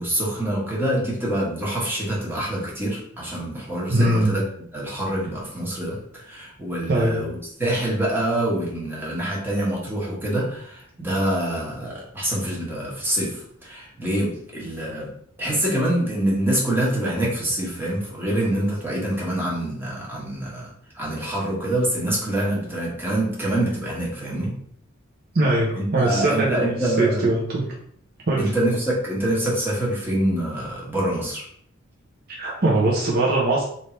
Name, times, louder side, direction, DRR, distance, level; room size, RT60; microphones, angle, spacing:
voice 1, 0.0-4.4 4.7-15.1 15.4-24.5 25.7-27.3 28.4-31.5, right 1 dB, 10° right, -5 dB, 1.2 m, -25 dB
voice 2, 3.9-4.3 6.9-7.1 25.3-26.6 27.0-27.6 28.3-28.5 32.4-33.6, right 2 dB, 50° right, -4 dB, 0.8 m, -21 dB
3.3 x 2.7 x 4.3 m, 0.65 s
head